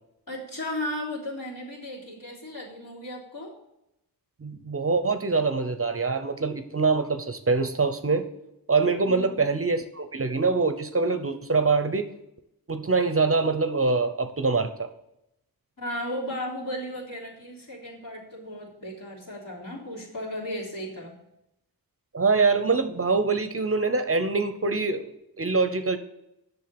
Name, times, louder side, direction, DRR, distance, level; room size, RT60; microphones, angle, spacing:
voice 1, 0.3-3.5 9.0-9.4 15.8-21.1, left 1 dB, 60° left, -5 dB, 3.4 m, -35 dB
voice 2, 4.4-8.3 8.7-12.1 12.7-14.9 22.1-26.0, right 4 dB, 35° right, 10 dB, 0.8 m, -24 dB
7.5 x 6.5 x 6.9 m, 0.84 s
wide cardioid pair, 70°, 38 cm